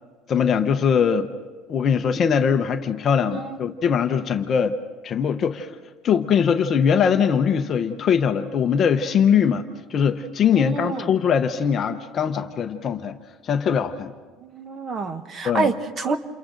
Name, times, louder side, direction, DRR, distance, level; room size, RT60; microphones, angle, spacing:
voice 1, 0.3-1.3 1.7-4.8 5.0-5.7 6.0-13.2 13.4-14.1 15.4-15.7, left 7 dB, 25° left, 7 dB, 0.8 m, -21 dB
voice 2, 10.5-11.1 14.4-16.2, right 4 dB, 25° right, 10 dB, 1.0 m, -28 dB
29.5 x 28.5 x 3.9 m, 1.4 s
cardioid pair, 180°, 0 cm